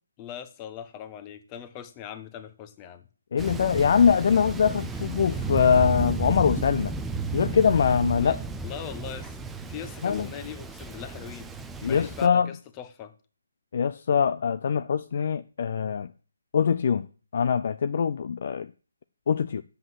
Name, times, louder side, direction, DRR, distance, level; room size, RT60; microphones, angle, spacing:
voice 1, 0.2-3.0 8.2-9.4 9.7-11.5 11.8-13.1, left 9 dB, 20° left, 1.1 m, -40 dB
voice 2, 3.3-6.9 7.3-8.4 10.0-10.3 11.8-12.5 13.7-16.1 16.5-17.1 17.3-18.7 19.3-19.6, left 7 dB, 45° left, 0.4 m, -23 dB
Thunder, 3.4-12.3, right 3 dB, 5° right, 0.6 m, -33 dB
7.8 x 7.6 x 7.7 m
figure-of-eight pair, 145°, 0 cm